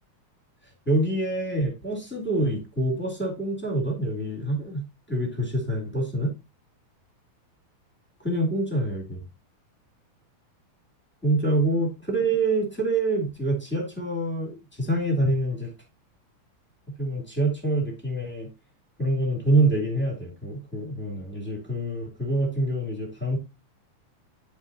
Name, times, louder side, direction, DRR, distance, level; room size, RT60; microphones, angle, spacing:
voice 1, 0.9-4.8 5.1-6.3 8.2-9.2 11.2-15.7 17.0-18.5 19.0-23.4, right 2 dB, 5° left, 2.0 m, -26 dB
10.0 x 5.1 x 2.6 m
omnidirectional pair, 3.5 m